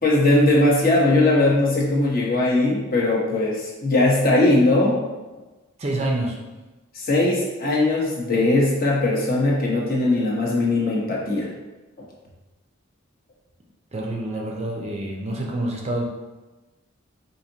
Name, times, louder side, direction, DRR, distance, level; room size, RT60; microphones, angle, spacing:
voice 1, 0.0-5.0 6.9-11.5, left 2 dB, 45° left, -4 dB, 0.9 m, -19 dB
voice 2, 5.8-6.4 13.9-16.0, right 1 dB, 30° right, -1 dB, 0.5 m, -27 dB
4.9 x 2.7 x 2.8 m, 1.1 s
head